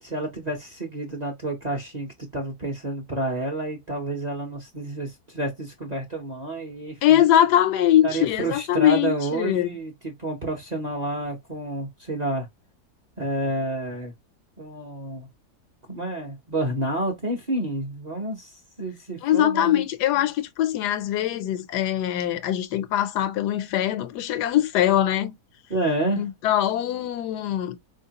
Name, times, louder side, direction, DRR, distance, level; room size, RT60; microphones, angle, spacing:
voice 1, 0.0-7.2 8.0-12.5 13.2-14.1 14.6-15.3 15.9-18.5 18.8-19.8 25.7-26.3, right 2 dB, 35° right, 0.7 m, -29 dB
voice 2, 7.0-9.7 19.2-25.3 26.2-27.8, left 12 dB, 85° left, 1.2 m, -22 dB
4.3 x 2.8 x 2.8 m
omnidirectional pair, 1.7 m